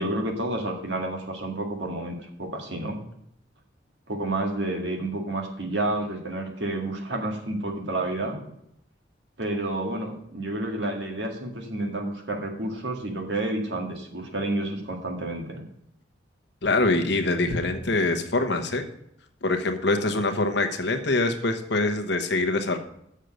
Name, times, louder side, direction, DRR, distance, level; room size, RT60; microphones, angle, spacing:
voice 1, 0.0-3.0 4.1-8.5 9.4-15.6, right 2 dB, 65° right, 2 dB, 1.9 m, -30 dB
voice 2, 16.6-18.8 19.4-22.8, left 2 dB, 60° left, 6 dB, 1.0 m, -24 dB
6.7 x 6.5 x 7.6 m, 0.76 s
head